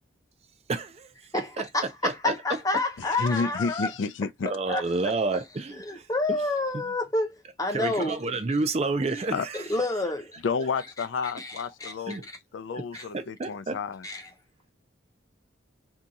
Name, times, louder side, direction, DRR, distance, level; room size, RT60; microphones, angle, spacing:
voice 1, 0.7-1.7 2.0-2.3 4.4-6.1 7.7-9.6 12.1-12.2 12.9-13.8, right 3 dB, 35° right, 0.4 m, -30 dB
voice 2, 1.3-3.9 4.7-5.1 5.8-8.2 9.5-10.4 11.4-12.2 12.9-13.0 14.0-14.3, left 2 dB, 20° left, 0.6 m, -29 dB
voice 3, 3.0-4.5 9.3-9.5 10.4-12.3 12.5-14.1, left 5 dB, 85° left, 0.4 m, -30 dB
2.7 x 2.3 x 3.9 m
head